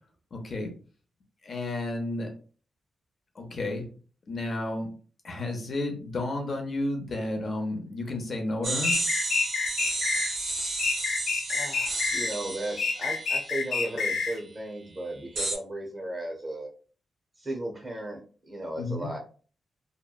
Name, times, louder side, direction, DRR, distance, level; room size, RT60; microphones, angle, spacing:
voice 1, 0.3-0.7 1.4-2.3 3.4-3.8 4.3-4.9 5.2-9.0 18.8-19.1, left 2 dB, 45° left, 3 dB, 0.6 m, -32 dB
sound 1, 8.6-14.3 15.4-15.6, right 2 dB, 75° right, 1.0 m, -32 dB
sound 2, 8.8-10.3 10.8-12.3 12.8-14.4, left 4 dB, 90° left, 0.6 m, -28 dB
voice 2, 11.5-16.7 17.4-19.2, right 1 dB, 20° right, 2 dB, 0.7 m, -35 dB
2.8 x 2.1 x 2.3 m, 0.40 s
wide cardioid pair, 135°, 0 cm